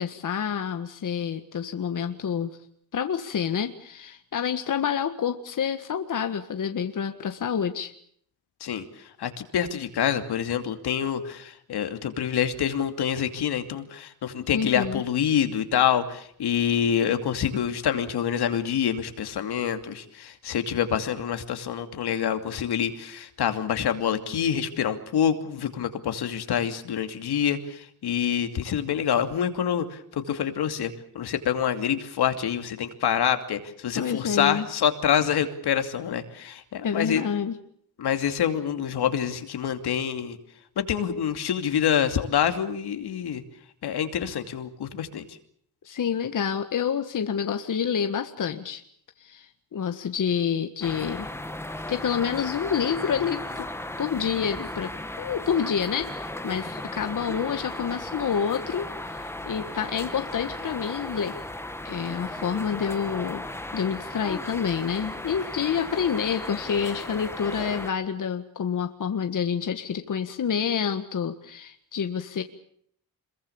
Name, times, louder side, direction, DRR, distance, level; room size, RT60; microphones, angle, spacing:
voice 1, 0.0-2.6 2.9-7.9 14.5-15.0 33.9-34.7 36.8-37.6 45.8-48.8 49.2-51.3 51.9-53.5 54.0-61.4 61.8-63.4 63.7-72.4, left 7 dB, 50° left, 7 dB, 1.7 m, -28 dB
voice 2, 9.2-37.2 38.0-40.4 40.8-43.4 43.8-45.4, left 9 dB, 75° left, 7 dB, 2.7 m, -26 dB
sound 1, 50.8-67.9, left 1 dB, 5° left, 1.6 m, -36 dB
26.5 x 22.5 x 7.1 m, 0.65 s
cardioid pair, 110°, 39 cm